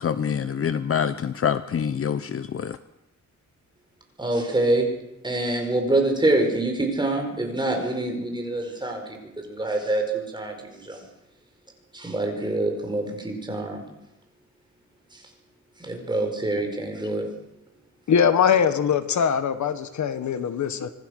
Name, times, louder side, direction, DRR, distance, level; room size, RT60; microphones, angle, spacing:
voice 1, 0.0-2.8, left 7 dB, 45° left, 12 dB, 0.8 m, -26 dB
voice 2, 4.2-4.9 5.2-11.0 11.9-13.9 15.8-17.3, right 2 dB, 15° right, 3 dB, 4.9 m, -25 dB
voice 3, 18.1-20.9, left 7 dB, 65° left, 10 dB, 1.5 m, -22 dB
26.0 x 19.0 x 6.6 m, 0.90 s
wide cardioid pair, 170°, 31 cm